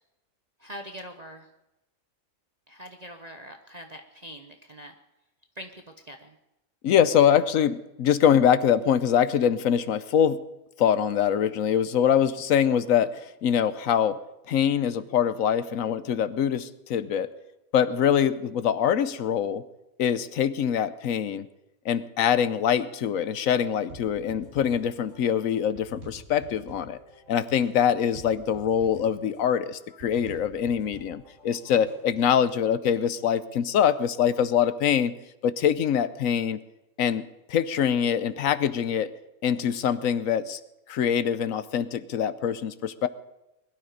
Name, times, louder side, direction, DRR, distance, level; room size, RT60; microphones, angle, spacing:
voice 1, 0.6-1.5 2.7-4.9 5.5-6.4 32.3-32.5, equal, 30° right, 4 dB, 1.0 m, -43 dB
voice 2, 6.8-10.4 10.8-14.2 14.5-17.3 17.7-19.6 20.0-21.5 21.8-27.0 27.3-35.1 35.4-36.6 37.0-39.1 39.4-40.6 40.9-43.1, left 8 dB, 75° left, 14 dB, 1.2 m, -24 dB
sound 1, 23.9-32.3, equal, 65° right, 5.8 m, -48 dB
21.0 x 12.5 x 5.1 m, 0.94 s
omnidirectional pair, 1.4 m